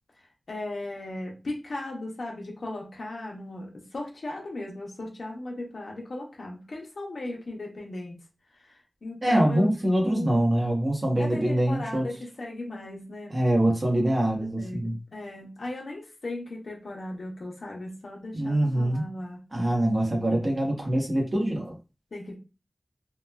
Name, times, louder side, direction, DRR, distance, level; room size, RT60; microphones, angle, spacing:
voice 1, 0.5-8.1 9.0-9.7 10.0-10.4 11.2-13.4 14.6-19.4 22.1-22.3, left 2 dB, 90° left, -1 dB, 0.6 m, -37 dB
voice 2, 9.2-12.1 13.3-15.0 18.3-19.0 19.5-21.8, right 1 dB, 45° right, -1 dB, 0.9 m, -24 dB
2.9 x 2.2 x 2.3 m, 0.31 s
wide cardioid pair, 60°, 0 cm